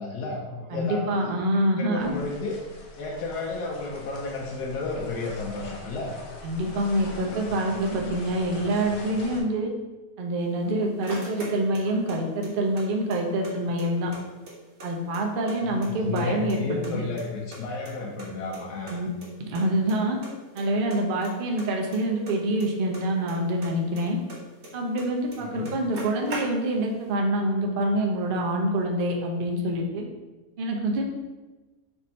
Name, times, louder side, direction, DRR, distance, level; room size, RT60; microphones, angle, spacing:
voice 1, 0.0-1.3 1.8-2.6 3.0-6.1 15.7-19.0 25.4-25.7, left 3 dB, 85° left, -2 dB, 1.2 m, -32 dB
voice 2, 0.7-2.2 6.4-9.7 10.2-14.1 14.8-17.0 18.9-19.1 19.5-20.2 20.5-24.2 24.7-30.0 30.6-31.0, right 1 dB, 85° right, 1 dB, 0.4 m, -26 dB
sound 1, 2.0-9.4, left 2 dB, 65° left, 1.0 m, -43 dB
sound 2, 10.4-12.2 12.4-13.5 13.8-13.9 14.1-15.6 15.8-16.6 16.8-18.3 18.5-18.6 18.9-19.0 19.2-19.3 19.5-20.0 20.2-20.6 20.9-23.3 23.6-25.1 25.3-25.4 25.6-26.9, right 2 dB, 50° right, 1.1 m, -40 dB
3.5 x 2.6 x 4.2 m, 1.2 s
omnidirectional pair, 1.7 m